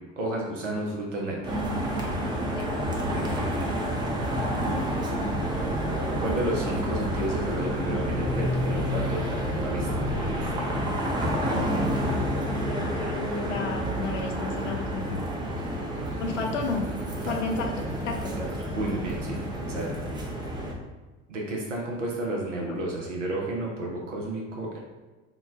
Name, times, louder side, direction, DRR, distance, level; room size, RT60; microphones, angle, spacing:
voice 1, 0.2-1.6 3.1-3.6 6.2-10.5 11.5-11.9 17.2-17.3 18.4-18.5 18.7-19.9 21.3-24.8, right 1 dB, 80° right, -1 dB, 0.6 m, -32 dB
sound 1, 1.4-20.7, equal, 15° right, 0.4 m, -29 dB
voice 2, 12.0-15.1 16.2-16.9 17.3-18.3, left 4 dB, 75° left, 2 dB, 0.5 m, -33 dB
3.7 x 2.1 x 2.4 m, 1.2 s
figure-of-eight pair, 65°, 37 cm